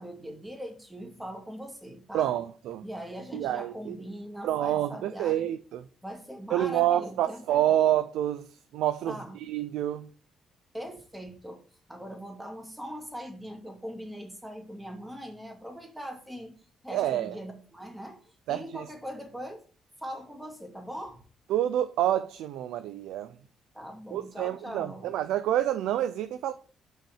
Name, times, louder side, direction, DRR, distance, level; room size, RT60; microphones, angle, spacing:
voice 1, 0.0-2.3 2.8-5.5 6.0-7.9 9.1-9.4 10.7-11.6 11.9-16.6 16.8-19.6 20.0-21.2 23.7-25.1, equal, 5° right, 2.5 m, -41 dB
voice 2, 2.1-2.8 3.3-3.9 4.4-5.8 6.5-10.1 16.9-17.3 18.5-18.8 21.5-23.3 24.1-26.5, right 12 dB, 90° right, 0.4 m, -28 dB
6.2 x 5.6 x 6.4 m
cardioid pair, 90°, 0 cm